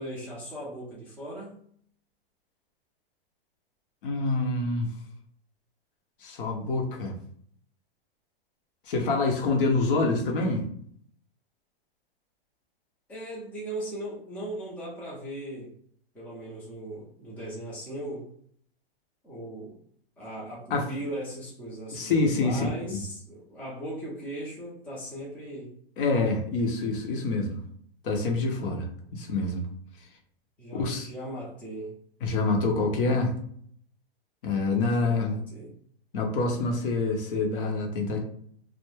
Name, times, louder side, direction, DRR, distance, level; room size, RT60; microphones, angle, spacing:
voice 1, 0.0-1.6 13.1-15.7 16.1-18.3 19.2-19.8 20.2-25.7 30.6-32.0 35.0-35.7, right 1 dB, 5° left, -7 dB, 0.4 m, -38 dB
voice 2, 4.0-4.9 6.2-7.2 8.9-10.7 20.7-20.9 21.9-23.0 26.0-27.6 28.0-29.7 30.8-31.1 32.2-33.3 34.4-35.4 36.1-38.2, left 3 dB, 55° left, 2 dB, 0.8 m, -26 dB
2.2 x 2.0 x 3.1 m, 0.63 s
hypercardioid pair, 145°, 31 cm